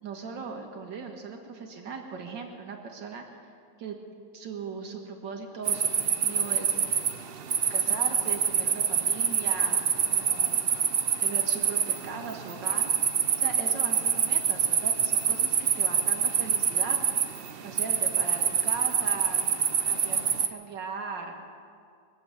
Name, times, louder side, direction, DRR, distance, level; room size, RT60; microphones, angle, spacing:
voice 1, 0.0-3.2 3.8-4.0 4.3-6.9 7.7-10.7 11.2-12.9 13.4-17.0 17.6-19.4 19.9-20.2 20.5-21.4, right 5 dB, 75° right, 3 dB, 2.3 m, -39 dB
sound 1, 5.7-20.5, right 7 dB, 60° right, 0.6 m, -26 dB
22.0 x 7.7 x 8.3 m, 2.2 s
omnidirectional pair, 2.0 m